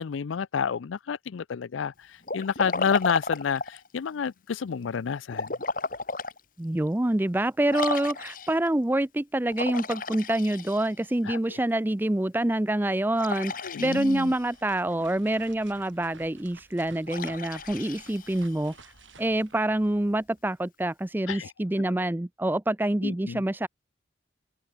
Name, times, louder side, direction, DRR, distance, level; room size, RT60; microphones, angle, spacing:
voice 1, 0.0-5.5 11.3-11.6 13.6-14.3 21.3-21.5 23.0-23.4, left 6 dB, 90° left, 0.4 m, -30 dB
Liquid, 2.2-3.9 5.3-6.4 6.9-7.0 7.7-8.7 9.5-11.1 13.2-14.5 17.1-18.7, left 3 dB, 45° left, 2.1 m, -34 dB
voice 2, 6.6-18.9 19.2-23.7, right 1 dB, 10° right, 0.4 m, -26 dB
sound 1, 14.2-20.5, right 4 dB, 85° right, 7.9 m, -54 dB
open air
head